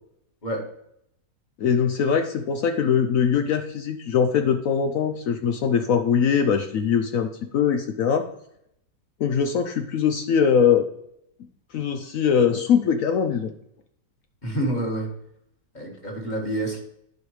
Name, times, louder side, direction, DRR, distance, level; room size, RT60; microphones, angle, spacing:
voice 1, 1.6-8.3 9.2-10.9 11.7-13.5, left 7 dB, 65° left, 7 dB, 0.9 m, -22 dB
voice 2, 14.4-15.1 15.7-16.8, right 1 dB, 30° left, 0 dB, 1.8 m, -28 dB
10.5 x 5.2 x 3.2 m, 0.74 s
omnidirectional pair, 1.7 m